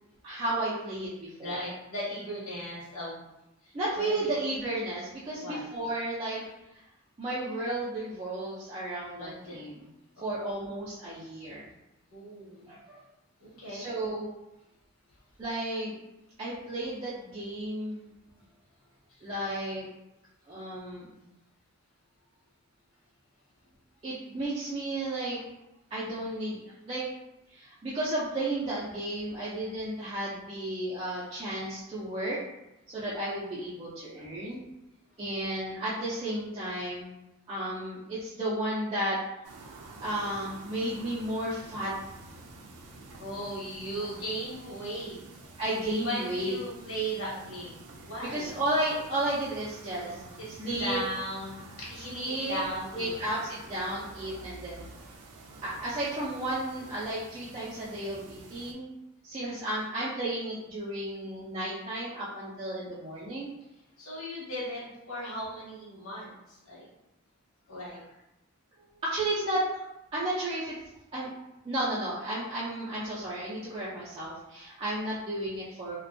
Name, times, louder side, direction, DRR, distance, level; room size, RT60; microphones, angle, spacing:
voice 1, 0.2-1.7 3.7-6.4 7.2-9.9 10.2-11.7 12.7-13.0 13.7-14.3 15.4-16.0 16.4-18.1 19.2-19.9 20.5-21.1 24.0-25.4 25.9-26.6 26.9-27.1 27.5-32.4 32.9-34.6 35.2-37.1 37.5-39.2 40.0-41.9 45.6-46.6 48.3-50.2 50.6-51.0 52.1-52.6 52.9-54.9 55.6-58.9 59.2-63.5 69.0-69.8 70.1-70.7 71.1-71.3 71.6-76.0, right 1 dB, 25° right, -9 dB, 0.4 m, -33 dB
voice 2, 1.4-3.2 3.6-4.3 5.3-5.6 9.1-9.6 10.2-10.3 12.1-12.7 13.4-13.9 43.2-45.5 46.0-48.6 50.0-50.5 50.8-53.1 59.4-59.5 64.0-66.9 67.7-68.0, equal, 70° left, -6 dB, 1.0 m, -37 dB
sound 1, 39.4-58.7, right 2 dB, 90° right, 0.4 m, -49 dB
2.5 x 2.2 x 2.5 m, 0.91 s
head